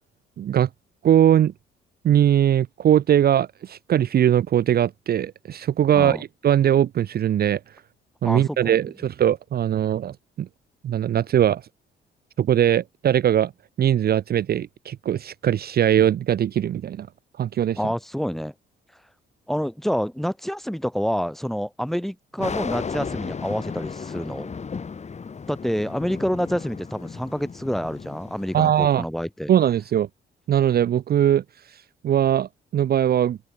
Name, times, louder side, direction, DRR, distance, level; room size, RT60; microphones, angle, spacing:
voice 1, 0.4-0.7 1.0-1.5 2.0-7.6 8.2-10.5 10.8-11.6 12.4-13.5 13.8-17.1 17.4-17.8 28.5-29.0 29.5-30.1 30.5-31.4 31.7-33.4, right 10 dB, 50° right, 0.6 m, -20 dB
voice 2, 8.2-8.8 17.8-18.5 19.5-24.5 25.5-29.5, equal, ahead, 2.7 m, -27 dB
sound 1, 22.4-28.7, left 5 dB, 35° left, 1.9 m, -34 dB
open air
cardioid pair, 90°, 20 cm